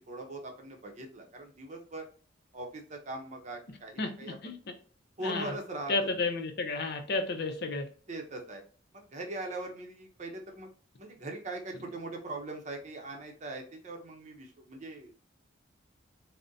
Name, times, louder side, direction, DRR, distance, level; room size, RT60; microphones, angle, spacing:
voice 1, 0.1-2.0 2.5-4.4 5.2-6.1 8.1-8.6 8.9-10.7 11.0-15.1, right 2 dB, 35° right, 0.6 m, -41 dB
voice 2, 4.0-4.6 5.2-5.5 5.9-7.9, left 3 dB, 55° left, 0.6 m, -32 dB
3.8 x 2.1 x 2.6 m
head